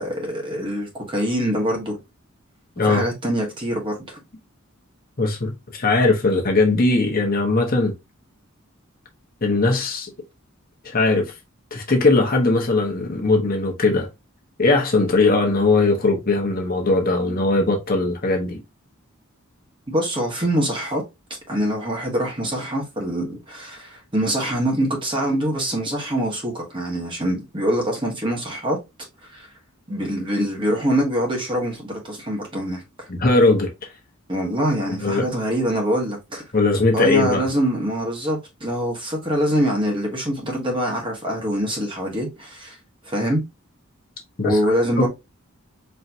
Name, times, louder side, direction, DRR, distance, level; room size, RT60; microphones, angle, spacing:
voice 1, 0.0-2.0 2.8-4.2 19.9-21.0 21.5-28.8 29.2-29.5 29.9-33.1 34.3-36.4 36.9-42.8 43.0-43.4 44.4-45.1, equal, 25° right, 1.4 m, -24 dB
voice 2, 5.2-7.9 9.4-10.1 10.8-11.3 11.7-14.1 14.6-18.6 33.1-33.7 35.0-35.3 36.5-37.4 44.4-44.6 45.0-45.1, left 3 dB, 40° left, 1.0 m, -19 dB
4.4 x 3.2 x 2.7 m
head